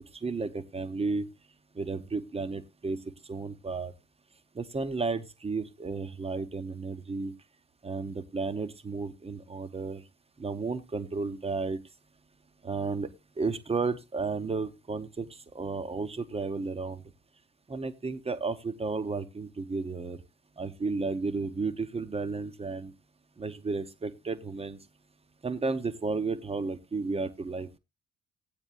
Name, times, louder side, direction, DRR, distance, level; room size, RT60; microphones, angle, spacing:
voice 1, 0.2-1.3 1.7-3.0 3.3-3.9 4.5-7.3 7.8-10.0 10.4-11.8 12.6-13.1 13.4-15.3 15.5-17.0 17.7-20.2 20.6-22.9 23.4-24.8 25.4-27.8, right 4 dB, 20° right, 11 dB, 0.9 m, -33 dB
15.5 x 9.0 x 2.4 m, 0.22 s
figure-of-eight pair, 50°, 34 cm